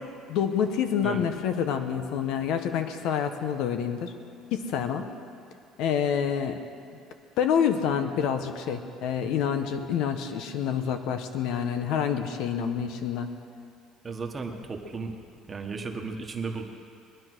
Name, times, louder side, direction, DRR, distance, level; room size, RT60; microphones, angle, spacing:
voice 1, 0.3-4.1 4.5-5.1 5.8-6.6 7.4-13.3, left 8 dB, 70° left, 7 dB, 1.2 m, -27 dB
voice 2, 14.0-15.2 15.5-16.6, right 4 dB, 20° right, 3 dB, 1.4 m, -34 dB
21.5 x 10.5 x 6.2 m, 2.4 s
cardioid pair, 145°, 0 cm